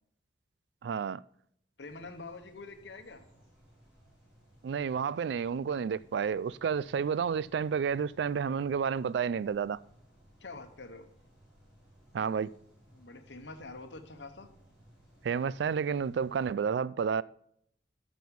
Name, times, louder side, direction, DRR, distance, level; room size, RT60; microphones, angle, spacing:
voice 1, 0.8-1.2 4.6-9.8 12.1-12.5 15.2-17.2, right 6 dB, 75° right, 0.3 m, -30 dB
voice 2, 1.8-3.3 10.4-11.1 12.9-14.5, left 3 dB, 90° left, 1.1 m, -46 dB
sound 1, 1.8-16.5, equal, 5° right, 4.7 m, -61 dB
9.3 x 6.2 x 5.3 m
head